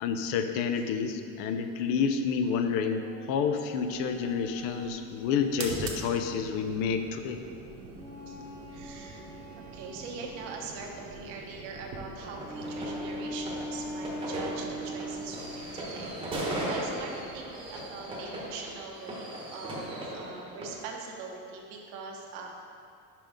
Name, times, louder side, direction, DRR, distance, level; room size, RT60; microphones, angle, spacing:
voice 1, 0.0-7.4, left 6 dB, 65° left, 7 dB, 0.6 m, -29 dB
sound 1, 2.8-6.3 7.9-10.8 12.4-15.7, equal, 10° left, 1.0 m, -42 dB
sound 2, 3.7-19.0, right 4 dB, 50° right, 1.0 m, -45 dB
voice 2, 8.7-9.3 9.7-22.5, right 4 dB, 85° right, 0 dB, 1.2 m, -42 dB
sound 3, 12.2-20.7, right 1 dB, 15° right, 1.0 m, -38 dB
5.7 x 5.3 x 5.0 m, 2.4 s
cardioid pair, 170°, 36 cm